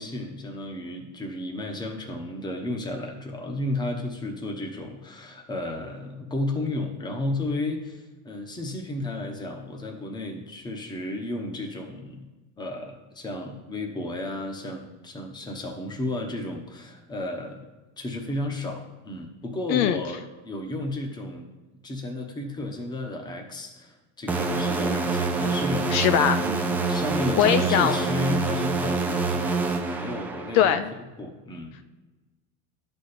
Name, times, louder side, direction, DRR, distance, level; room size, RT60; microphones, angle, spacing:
voice 1, 0.0-12.3 12.6-17.7 18.0-21.5 21.8-25.9 26.4-30.8 31.2-31.8, left 1 dB, 10° left, 3 dB, 0.9 m, -33 dB
voice 2, 19.7-20.0 25.9-26.4 27.4-28.0 30.5-30.9, left 9 dB, 50° left, 11 dB, 0.4 m, -21 dB
sound 1, 24.3-30.8, right 3 dB, 5° right, 0.5 m, -26 dB
10.5 x 4.4 x 6.7 m, 1.2 s
cardioid pair, 160°, 40 cm